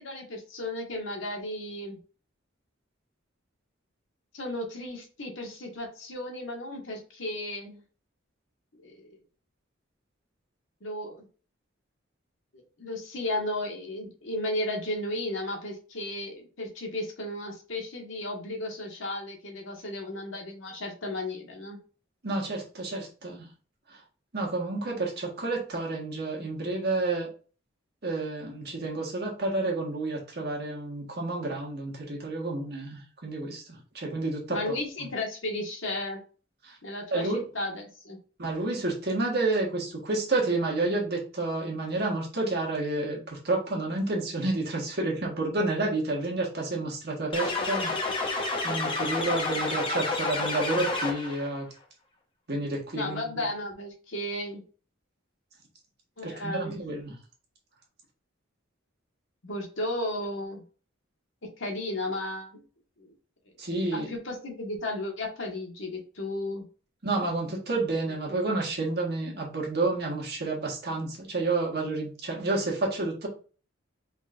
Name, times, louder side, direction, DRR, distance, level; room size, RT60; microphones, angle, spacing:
voice 1, 0.0-2.0 4.3-7.8 8.8-9.2 10.8-11.3 12.8-21.8 34.5-36.2 36.8-38.2 52.9-54.6 56.2-56.8 59.4-60.6 61.6-62.6 63.0-63.1 63.9-66.6 68.3-68.4, left 1 dB, 75° left, 1 dB, 1.5 m, -34 dB
voice 2, 22.2-23.5 23.9-24.0 24.3-27.3 28.0-34.7 36.6-36.8 37.1-37.4 38.4-48.2 48.6-51.7 52.5-53.2 56.2-57.1 63.6-64.1 67.0-73.3, right 2 dB, 55° right, -1 dB, 1.5 m, -30 dB
sound 1, 47.3-51.5, left 3 dB, 25° left, 1.0 m, -29 dB
5.1 x 3.6 x 2.5 m, 0.38 s
head